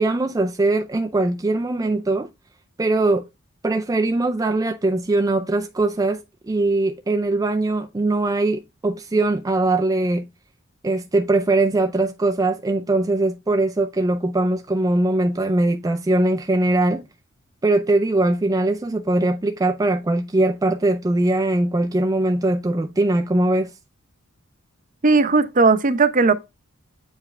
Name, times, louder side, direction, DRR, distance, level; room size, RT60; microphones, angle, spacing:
voice 1, 0.0-2.3 2.8-3.3 3.6-6.2 6.5-10.3 10.8-17.1 17.6-23.7, right 2 dB, 15° right, 0.4 m, -21 dB
voice 2, 25.0-26.3, right 4 dB, 40° right, 0.7 m, -16 dB
8.2 x 4.8 x 3.2 m
head